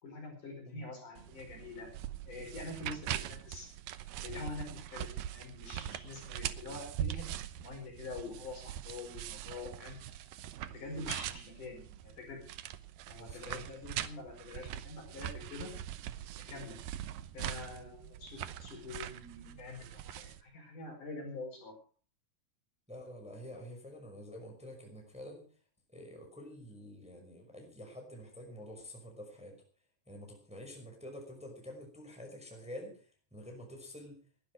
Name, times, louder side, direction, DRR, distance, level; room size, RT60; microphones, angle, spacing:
voice 1, 0.0-1.9 2.3-3.7 4.2-7.3 7.6-10.2 10.7-12.4 13.1-15.7 16.5-16.8 17.3-21.7, left 3 dB, 50° left, 2 dB, 6.2 m, -45 dB
sound 1, 1.2-20.4, right 12 dB, 75° right, 2.3 m, -42 dB
voice 2, 13.1-13.7 22.9-25.5 25.9-29.6 30.1-34.2, equal, ahead, 2 dB, 5.3 m, -48 dB
20.0 x 12.5 x 4.8 m, 0.39 s
omnidirectional pair, 4.7 m